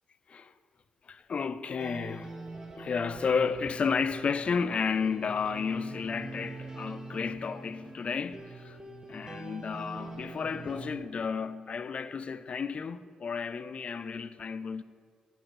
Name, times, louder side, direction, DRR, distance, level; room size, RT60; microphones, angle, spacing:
voice 1, 1.1-2.3 2.7-8.8 9.1-14.8, left 5 dB, 50° left, 0.3 m, -32 dB
sound 1, 1.8-11.0, right 3 dB, 25° right, 0.9 m, -44 dB
5.8 x 5.1 x 6.1 m
cardioid pair, 60°, 3 cm